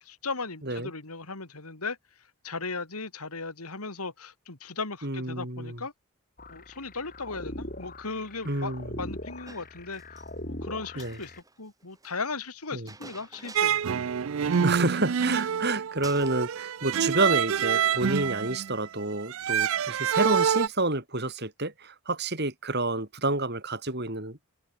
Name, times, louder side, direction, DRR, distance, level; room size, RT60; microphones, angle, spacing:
voice 1, 0.0-2.0 2.4-5.9 6.5-11.3 11.6-13.8, left 4 dB, 90° left, 3.3 m, -37 dB
voice 2, 5.0-5.8 8.4-9.0 11.0-11.2 12.7-12.9 14.6-24.4, right 2 dB, 50° right, 5.3 m, -29 dB
sound 1, 6.4-11.4, left 1 dB, 40° left, 4.0 m, -41 dB
Chink clink, 9.5-10.3 10.9-12.2 12.9-14.0 14.2-14.3 14.5-15.7 16.0-16.5, right 3 dB, 15° right, 7.5 m, -49 dB
sound 2, 13.6-20.7, right 7 dB, 65° right, 0.4 m, -27 dB
head